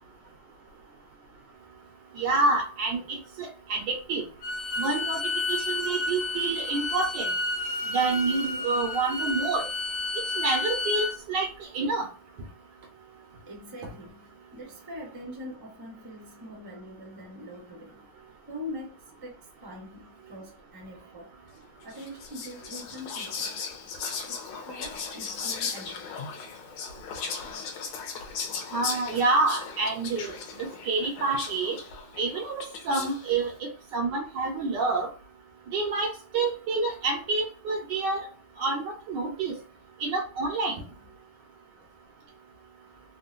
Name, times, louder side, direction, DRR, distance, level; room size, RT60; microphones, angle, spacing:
voice 1, 2.2-4.2 4.8-7.3 7.9-9.7 10.4-11.5 11.7-12.1 28.7-31.8 32.2-35.1 35.7-38.3 38.6-39.6 40.0-40.8, right 3 dB, 70° right, 1.1 m, -28 dB
Bowed string instrument, 4.4-11.2, left 2 dB, 55° left, 1.3 m, -31 dB
voice 2, 13.5-18.1 18.5-21.3 21.8-23.7 24.3-26.2, left 1 dB, 35° right, 0.3 m, -43 dB
Whispering, 21.9-33.3, left 5 dB, 80° left, 1.5 m, -37 dB
3.6 x 2.2 x 2.4 m
omnidirectional pair, 2.3 m